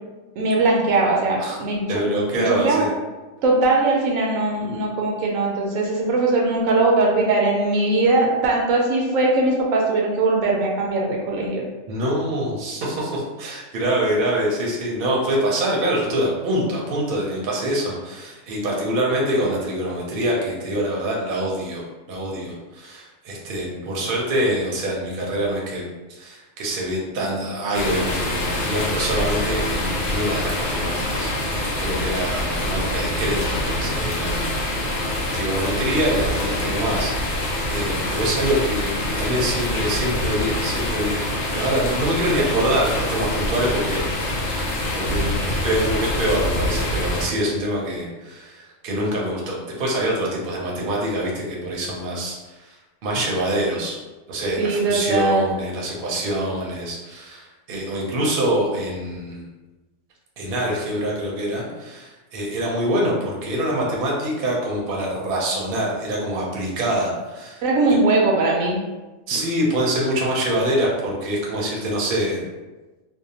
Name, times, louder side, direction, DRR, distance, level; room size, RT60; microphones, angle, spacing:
voice 1, 0.4-1.8 2.3-2.9 3.4-11.7 54.6-55.5 67.6-68.8, right 2 dB, 85° right, -1 dB, 1.0 m, -20 dB
voice 2, 1.9-2.9 11.9-25.8 26.1-35.0 35.3-44.6 45.0-52.8 53.0-54.0 54.3-59.4 60.4-67.6 69.3-72.4, right 1 dB, 55° right, -3 dB, 0.7 m, -25 dB
sound 1, 27.7-47.3, left 1 dB, 80° left, 1.1 m, -25 dB
2.6 x 2.1 x 2.8 m, 1.2 s
omnidirectional pair, 1.4 m